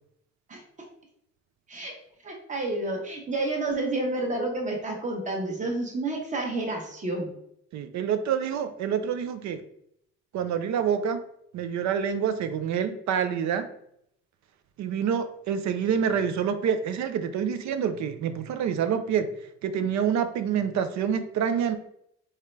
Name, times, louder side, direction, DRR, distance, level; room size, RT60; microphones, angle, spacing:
voice 1, 2.2-7.3, right 2 dB, 25° right, 1 dB, 0.9 m, -30 dB
voice 2, 7.7-9.6 10.3-11.2 11.5-13.7 14.8-19.3 19.6-21.8, right 7 dB, 70° right, 10 dB, 0.5 m, -27 dB
4.3 x 3.7 x 3.2 m, 0.73 s
cardioid pair, 170°, 30 cm